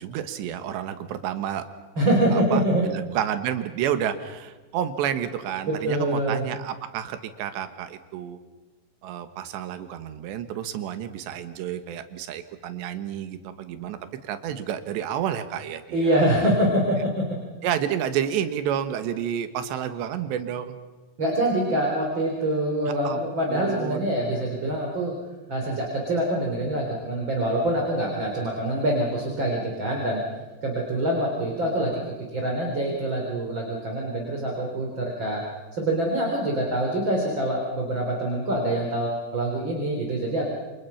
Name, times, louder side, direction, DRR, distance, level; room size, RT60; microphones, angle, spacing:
voice 1, 0.0-1.7 2.3-8.4 9.0-16.2 17.6-20.8 22.9-24.1, right 10 dB, 85° right, 9 dB, 3.6 m, -30 dB
voice 2, 2.0-2.8 5.7-6.5 15.9-17.4 21.2-25.1 25.5-30.2 30.6-31.9 32.3-35.4 35.7-40.4, right 1 dB, 30° right, -1 dB, 4.0 m, -25 dB
28.0 x 27.5 x 5.8 m, 1.2 s
omnidirectional pair, 4.9 m